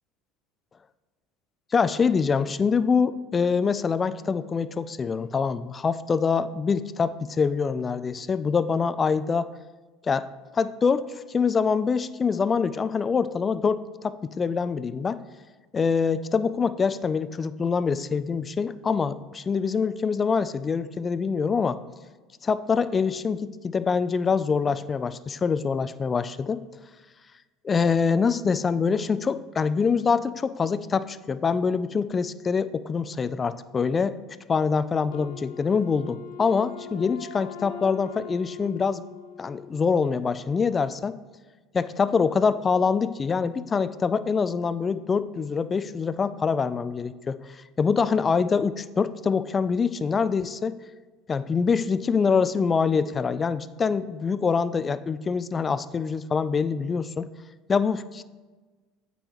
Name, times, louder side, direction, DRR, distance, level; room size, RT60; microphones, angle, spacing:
voice 1, 1.7-9.5 10.0-10.3 10.5-15.2 15.7-21.8 22.4-26.6 27.6-34.2 34.5-39.0 39.4-41.2 41.7-50.8 51.3-57.3 57.7-58.2, left 5 dB, 30° left, 14 dB, 0.3 m, -25 dB
Wind instrument woodwind instrument, 35.1-40.1, left 7 dB, 90° left, 0.5 m, -42 dB
8.4 x 5.3 x 3.0 m, 1.3 s
supercardioid pair, 85°, 0 cm